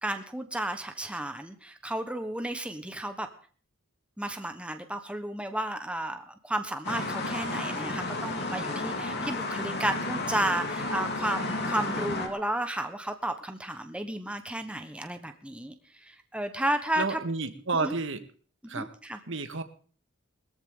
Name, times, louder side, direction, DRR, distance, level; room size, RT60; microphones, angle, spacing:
voice 1, 0.0-3.3 4.2-17.2 17.8-18.0 18.7-19.2, right 1 dB, 5° right, 7 dB, 1.2 m, -33 dB
sound 1, 6.8-12.3, left 2 dB, 55° left, 3.4 m, -32 dB
voice 2, 17.0-18.2 18.7-18.9 19.3-19.6, right 3 dB, 65° right, 9 dB, 1.7 m, -31 dB
21.0 x 14.0 x 3.8 m, 0.42 s
head